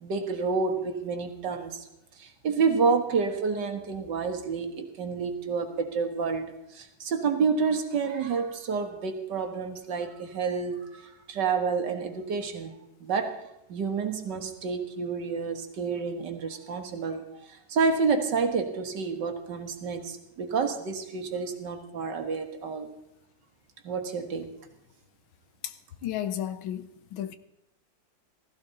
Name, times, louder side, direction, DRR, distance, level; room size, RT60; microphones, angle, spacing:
voice 1, 0.0-1.9 2.2-12.7 13.0-13.4 13.7-22.9 23.8-24.5, right 5 dB, 60° right, 1.9 m, -29 dB
voice 2, 26.0-27.4, left 11 dB, 85° left, 1.7 m, -33 dB
16.0 x 14.5 x 4.0 m
omnidirectional pair, 2.2 m